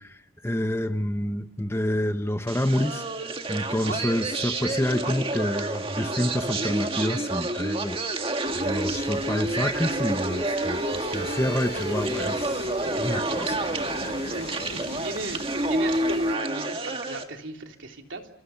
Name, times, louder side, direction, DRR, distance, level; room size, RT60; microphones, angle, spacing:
voice 1, 0.0-3.0 3.5-13.7, left 1 dB, 15° left, 0.9 m, -28 dB
sound 1, 2.5-17.2, right 2 dB, 30° right, 1.9 m, -29 dB
sound 2, 8.4-16.4, left 3 dB, 55° left, 1.1 m, -42 dB
voice 2, 14.3-15.4 15.7-18.3, right 2 dB, 85° right, 3.3 m, -36 dB
29.0 x 28.0 x 5.8 m
head